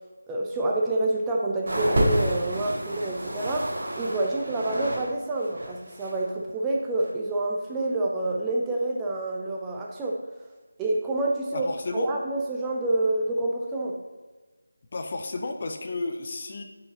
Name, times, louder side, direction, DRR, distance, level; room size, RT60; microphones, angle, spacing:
voice 1, 0.3-10.2 10.8-14.0, right 2 dB, 10° right, -2 dB, 0.5 m, -28 dB
sound 1, 1.7-5.1 5.3-6.2 7.0-7.1, right 1 dB, 45° right, 1.8 m, -29 dB
voice 2, 11.5-12.2 14.9-16.6, left 3 dB, 35° left, 5 dB, 0.7 m, -32 dB
9.4 x 4.9 x 3.7 m, 1.3 s
figure-of-eight pair, 165°, 0 cm